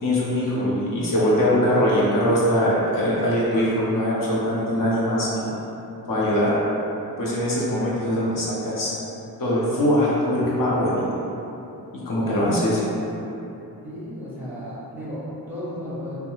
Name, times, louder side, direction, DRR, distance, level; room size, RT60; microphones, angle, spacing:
voice 1, 0.0-5.5 6.1-6.5 7.2-8.9 9.4-11.1 12.1-12.8, equal, 55° left, -7 dB, 0.6 m, -22 dB
voice 2, 13.8-16.2, equal, 5° right, -10 dB, 0.6 m, -34 dB
2.3 x 2.2 x 3.0 m, 2.9 s
wide cardioid pair, 115°, 39 cm